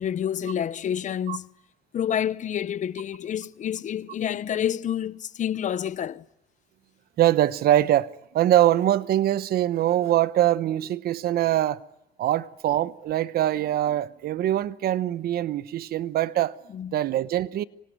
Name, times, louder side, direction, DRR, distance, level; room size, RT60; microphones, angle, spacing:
voice 1, 0.0-1.5 1.9-6.2 16.7-17.0, left 9 dB, 45° left, 0.9 m, -28 dB
voice 2, 7.2-11.8 12.2-16.5 16.9-17.6, right 13 dB, 65° right, 1.0 m, -23 dB
25.5 x 22.5 x 9.4 m
cardioid pair, 110°, 17 cm